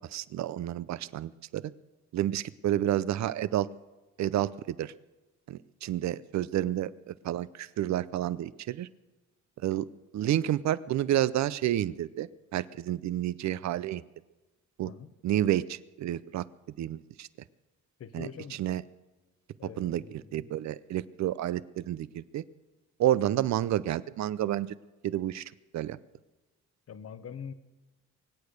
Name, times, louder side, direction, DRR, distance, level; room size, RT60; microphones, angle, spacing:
voice 1, 0.1-1.7 2.1-3.7 4.2-4.9 5.5-8.9 9.6-9.9 10.1-14.0 14.8-14.9 15.2-16.5 16.8-17.3 18.1-18.8 19.8-22.4 23.0-24.7 25.0-26.0, right 12 dB, 65° right, 18 dB, 0.7 m, -30 dB
voice 2, 18.0-18.6 19.6-20.5 26.9-27.5, left 7 dB, 50° left, 12 dB, 1.1 m, -44 dB
24.0 x 8.6 x 6.6 m, 1.1 s
cardioid pair, 90°, 30 cm